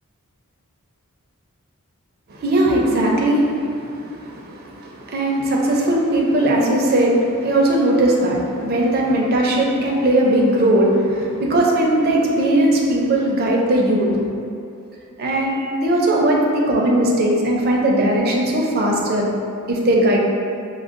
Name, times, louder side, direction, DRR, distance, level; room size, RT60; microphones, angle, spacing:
voice 1, 2.3-14.2 15.2-19.4 19.7-20.2, right 1 dB, 45° right, -2 dB, 0.5 m, -18 dB
6.1 x 2.1 x 2.5 m, 2.5 s
head